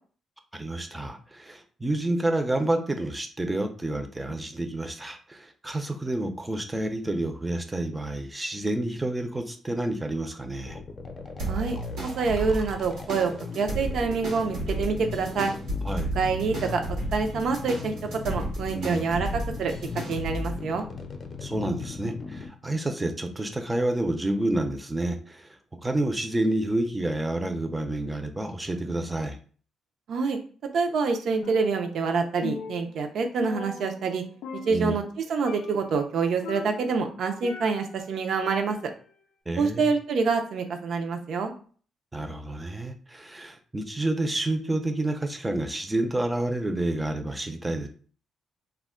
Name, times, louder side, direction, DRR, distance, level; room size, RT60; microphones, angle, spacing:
voice 1, 0.5-10.8 15.8-16.1 18.7-19.0 21.4-25.6 25.8-29.4 34.7-35.0 39.5-39.9 42.1-47.9, right 1 dB, 15° right, 7 dB, 0.5 m, -29 dB
sound 1, 10.7-22.5, left 5 dB, 40° left, 0.5 m, -38 dB
sound 2, 11.4-20.5, right 1 dB, 90° right, 0.9 m, -33 dB
voice 2, 11.5-15.5 16.1-16.8 17.1-17.9 18.2-19.7 20.1-20.9 30.1-30.4 30.7-34.2 34.7-35.0 35.3-38.8 39.6-41.5, right 4 dB, 70° right, 5 dB, 0.5 m, -26 dB
Percussion, 31.4-32.1 32.4-34.2 34.4-35.1 35.4-35.9 36.4-38.0 38.4-39.1, left 6 dB, 90° left, 0.3 m, -40 dB
2.2 x 2.1 x 3.6 m, 0.42 s
cardioid pair, 95°, 0 cm